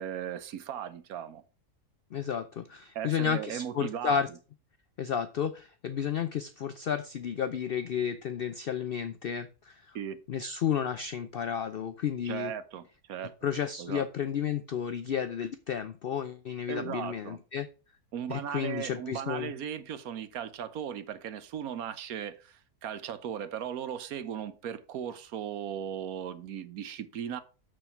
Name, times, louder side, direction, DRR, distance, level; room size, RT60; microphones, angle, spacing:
voice 1, 0.0-1.4 2.9-4.2 9.9-10.2 12.2-13.3 13.8-14.0 16.7-17.4 18.1-27.4, right 9 dB, 70° right, 1.2 m, -37 dB
voice 2, 2.1-4.3 5.0-10.0 10.3-12.5 13.4-17.7 18.3-19.5, left 8 dB, 75° left, 0.5 m, -32 dB
6.3 x 6.3 x 5.8 m
omnidirectional pair, 1.6 m